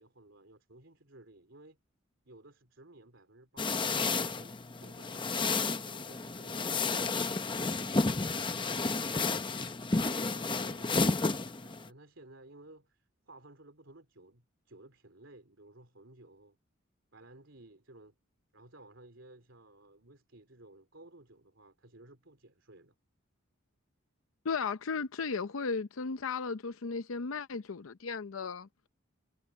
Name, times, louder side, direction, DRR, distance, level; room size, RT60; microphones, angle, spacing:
voice 1, 0.0-1.8 2.3-9.8 10.2-16.6 17.1-18.2 18.5-23.0, right 2 dB, 65° right, 3.6 m, -56 dB
sound 1, 3.6-11.9, left 3 dB, 25° left, 0.8 m, -31 dB
voice 2, 24.4-28.7, left 5 dB, 80° left, 0.6 m, -35 dB
head